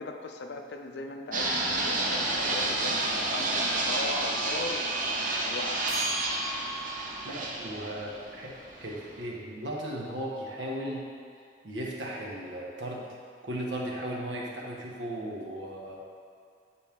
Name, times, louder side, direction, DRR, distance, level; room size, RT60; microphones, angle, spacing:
voice 1, 0.0-4.9 5.5-5.9 7.3-7.5, left 3 dB, 65° left, 4 dB, 0.5 m, -38 dB
Fixed-wing aircraft airplane, 1.3-9.2, right 2 dB, 50° right, 0.8 m, -30 dB
sound 1, 5.9-7.2, right 2 dB, 20° right, 1.2 m, -37 dB
voice 2, 7.2-11.1 11.6-13.1 13.4-16.0, right 1 dB, 85° right, -3 dB, 1.2 m, -36 dB
8.9 x 4.3 x 3.6 m, 2.2 s
head